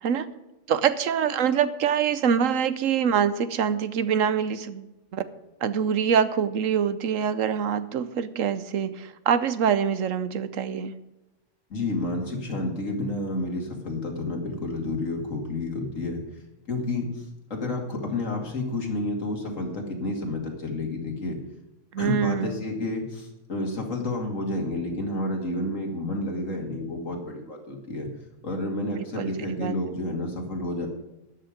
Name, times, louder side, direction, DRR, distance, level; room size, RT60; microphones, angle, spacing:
voice 1, 0.7-5.2 5.6-10.9 21.9-22.6 29.2-29.3 29.6-29.7, right 7 dB, 90° right, 13 dB, 1.2 m, -25 dB
voice 2, 11.7-16.2 16.7-17.2 17.5-21.4 22.0-28.1 28.4-30.9, left 2 dB, 80° left, 2 dB, 2.8 m, -30 dB
13.0 x 9.9 x 5.1 m, 0.99 s
omnidirectional pair, 1.3 m